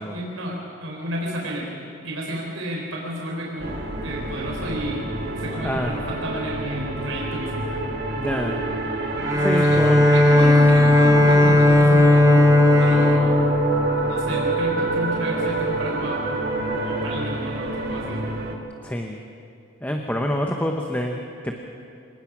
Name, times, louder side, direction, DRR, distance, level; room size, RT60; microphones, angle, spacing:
voice 1, 0.1-1.7 2.0-3.7 4.0-5.0 5.4-7.8 9.5-9.8 10.1-12.4 12.8-13.4 13.9-16.2 16.8-18.2, equal, 80° right, -2 dB, 4.0 m, -31 dB
sound 1, 3.6-18.5, right 2 dB, 50° right, 1.9 m, -27 dB
voice 2, 5.6-5.9 8.2-8.6 9.4-10.1 18.8-19.2 19.8-21.5, equal, 10° left, 2 dB, 1.0 m, -27 dB
Bowed string instrument, 9.2-14.4, left 2 dB, 15° right, 1.3 m, -16 dB
25.5 x 19.0 x 6.2 m, 2.5 s
head